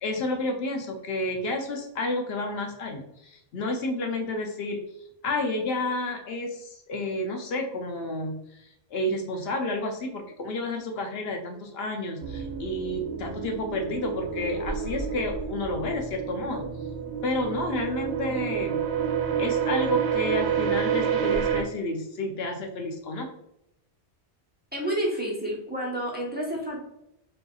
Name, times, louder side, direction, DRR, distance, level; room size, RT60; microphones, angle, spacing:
voice 1, 0.0-4.8 5.2-16.7 17.2-18.8 19.4-23.3, left 2 dB, 70° left, 3 dB, 0.8 m, -30 dB
sound 1, 12.2-21.6, right 7 dB, 75° right, 0.8 m, -29 dB
voice 2, 24.7-26.9, right 1 dB, 10° right, -4 dB, 1.0 m, -30 dB
5.2 x 2.8 x 2.3 m, 0.81 s
omnidirectional pair, 1.1 m